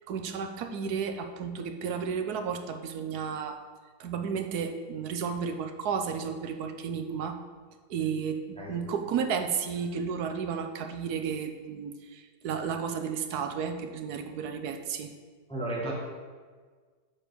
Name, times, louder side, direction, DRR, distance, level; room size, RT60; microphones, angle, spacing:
voice 1, 0.1-3.6 4.0-7.4 7.9-15.1, right 6 dB, 75° right, 6 dB, 1.3 m, -33 dB
voice 2, 15.5-15.9, right 1 dB, 5° left, -4 dB, 1.7 m, -33 dB
8.9 x 5.0 x 6.7 m, 1.5 s
omnidirectional pair, 1.7 m